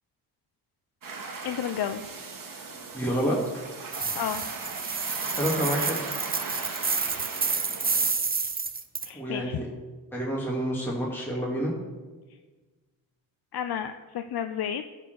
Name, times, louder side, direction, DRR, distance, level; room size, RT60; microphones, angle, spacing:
sound 1, 1.0-8.1, right 4 dB, 40° right, 1.9 m, -38 dB
voice 1, 1.4-2.0 4.1-4.5 7.0-7.6 9.0-9.6 12.3-12.4 13.5-14.8, left 9 dB, 50° left, 7 dB, 0.7 m, -32 dB
voice 2, 2.9-3.4 5.4-6.0 9.1-9.7 10.1-11.7, equal, 5° left, -5 dB, 2.7 m, -28 dB
sound 2, 3.9-9.1, right 4 dB, 20° right, 0.7 m, -29 dB
12.5 x 4.6 x 6.7 m, 1.3 s
supercardioid pair, 70°, 48 cm